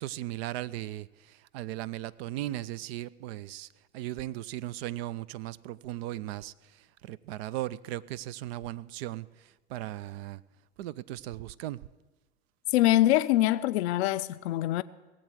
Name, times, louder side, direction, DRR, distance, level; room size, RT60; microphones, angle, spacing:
voice 1, 0.0-1.1 1.5-3.7 3.9-6.5 7.1-9.3 9.7-10.4 10.8-11.8, right 14 dB, 65° right, 0.5 m, -37 dB
voice 2, 12.7-14.8, left 14 dB, 70° left, 0.5 m, -24 dB
17.5 x 7.8 x 9.1 m
hypercardioid pair, 85°, 34 cm